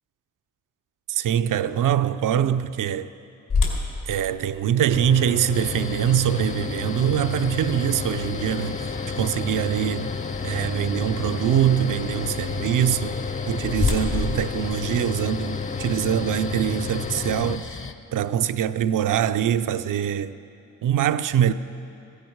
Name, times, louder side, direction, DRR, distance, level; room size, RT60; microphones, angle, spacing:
voice 1, 1.1-3.1 4.1-8.8 9.2-10.1 10.4-17.8 18.1-20.4 20.8-21.5, right 10 dB, 85° right, 0.5 m, -23 dB
sound 1, 3.5-9.4 10.0-10.1 10.7-10.9 13.0-15.7, left 4 dB, 75° left, 2.6 m, -30 dB
Mechanical fan, 4.9-17.6, left 5 dB, 25° left, 0.3 m, -31 dB
sound 2, 5.5-17.9, left 4 dB, 40° left, 0.9 m, -36 dB
16.0 x 15.5 x 4.6 m
cardioid pair, 70°, 31 cm